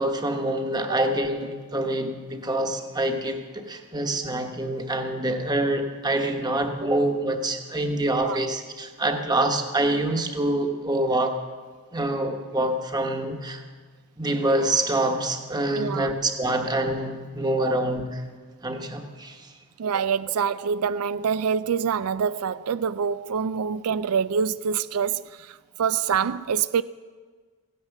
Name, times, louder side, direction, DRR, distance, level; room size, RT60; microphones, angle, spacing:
voice 1, 0.0-11.4 11.9-13.6 14.2-18.2 18.6-19.5, right 1 dB, 20° right, 1.2 m, -26 dB
voice 2, 15.8-16.1 19.8-25.2 25.8-26.8, right 7 dB, 80° right, 0.4 m, -25 dB
15.5 x 10.0 x 7.1 m
head